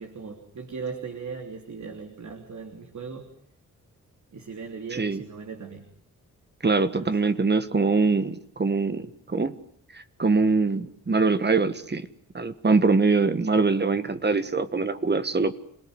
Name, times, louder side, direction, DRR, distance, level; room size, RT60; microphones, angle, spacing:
voice 1, 0.0-3.3 4.3-5.9 6.9-7.5, right 5 dB, 60° right, 5 dB, 3.3 m, -38 dB
voice 2, 4.9-5.2 6.6-9.5 9.9-12.1 12.3-15.5, right 4 dB, 35° right, 11 dB, 1.7 m, -23 dB
28.0 x 18.5 x 9.7 m, 0.63 s
cardioid pair, 75°, 32 cm